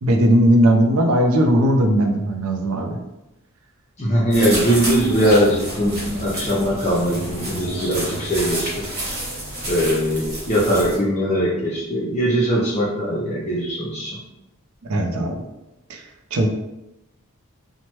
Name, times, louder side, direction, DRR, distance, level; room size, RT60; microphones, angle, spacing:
voice 1, 0.0-3.0 14.8-15.4 15.9-16.0 16.3-16.5, right 1 dB, 75° right, 3 dB, 0.4 m, -18 dB
voice 2, 4.0-8.8 9.7-14.2, equal, 30° left, -8 dB, 0.5 m, -20 dB
sound 1, 4.3-11.0, right 1 dB, 40° right, 1.2 m, -29 dB
3.0 x 2.1 x 2.9 m, 0.93 s
head